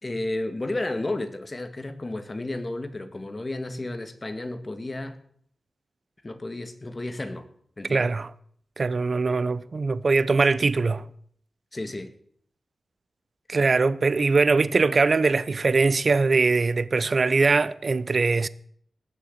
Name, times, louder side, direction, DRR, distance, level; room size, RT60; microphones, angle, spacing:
voice 1, 0.0-5.2 6.2-7.5 7.8-8.1 11.7-12.1, left 2 dB, 35° left, 1.9 m, -32 dB
voice 2, 7.9-8.3 8.8-11.1 13.5-18.5, right 4 dB, 55° right, 0.7 m, -22 dB
18.5 x 6.9 x 8.2 m
cardioid pair, 55°, 0 cm